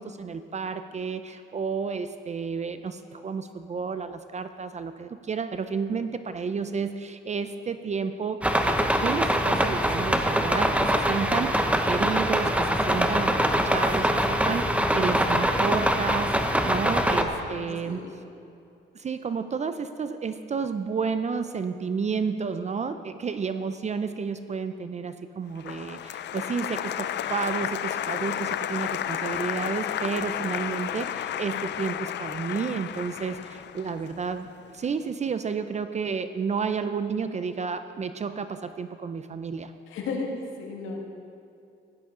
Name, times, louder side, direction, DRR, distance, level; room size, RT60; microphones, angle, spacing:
voice 1, 0.0-18.0 18.9-34.5 34.7-39.7, right 5 dB, 35° right, 10 dB, 0.6 m, -31 dB
sound 1, 8.4-17.2, equal, 5° right, 0.9 m, -23 dB
voice 2, 17.5-18.1 39.9-41.0, left 3 dB, 90° left, 0 dB, 1.9 m, -34 dB
Applause, 25.6-34.7, left 10 dB, 60° left, 0.5 m, -32 dB
16.0 x 11.5 x 3.8 m, 2.6 s
cardioid pair, 90°, 20 cm